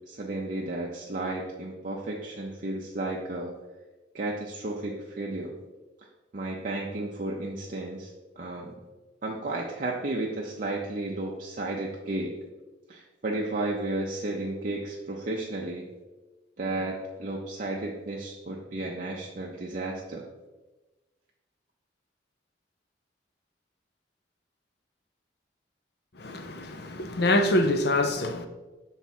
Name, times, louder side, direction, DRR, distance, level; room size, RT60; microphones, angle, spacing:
voice 1, 0.1-3.5 4.1-5.5 6.3-8.1 8.4-8.7 9.2-12.4 12.9-15.9 16.6-20.3, right 2 dB, 45° right, 0.6 m, -33 dB
voice 2, 26.2-28.5, left 1 dB, 55° left, 0.6 m, -25 dB
5.9 x 4.0 x 4.3 m
head